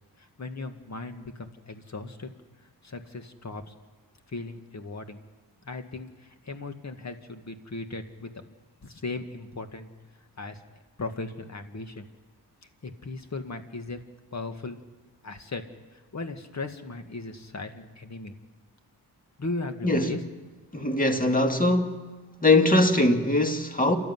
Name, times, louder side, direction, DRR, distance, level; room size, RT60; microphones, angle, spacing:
voice 1, 0.4-2.3 2.8-3.7 4.3-5.2 5.6-8.3 8.8-9.9 10.4-10.6 11.0-12.1 12.8-14.0 14.3-14.8 15.2-15.6 16.1-18.3 19.4-20.2, left 3 dB, 40° left, 2.1 m, -37 dB
voice 2, 20.7-22.1 22.4-24.0, left 2 dB, 20° left, 2.2 m, -22 dB
28.5 x 12.5 x 9.5 m
cardioid pair, 70°, 41 cm